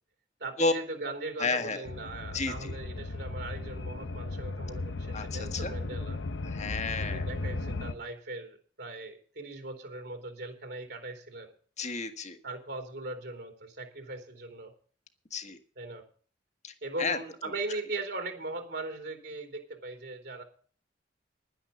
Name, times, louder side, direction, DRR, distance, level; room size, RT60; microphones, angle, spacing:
voice 1, 0.4-6.2 7.0-11.5 12.4-14.7 15.7-16.0 16.8-20.4, right 2 dB, 65° right, 5 dB, 3.2 m, -39 dB
voice 2, 1.4-1.8 2.3-2.7 5.1-5.7 6.5-7.3 11.8-12.4 15.3-15.6 16.6-16.7 17.0-17.2, left 3 dB, 40° left, 8 dB, 1.6 m, -31 dB
sound 1, 1.9-7.9, left 2 dB, 85° left, 0.9 m, -36 dB
11.0 x 10.0 x 7.0 m, 0.42 s
head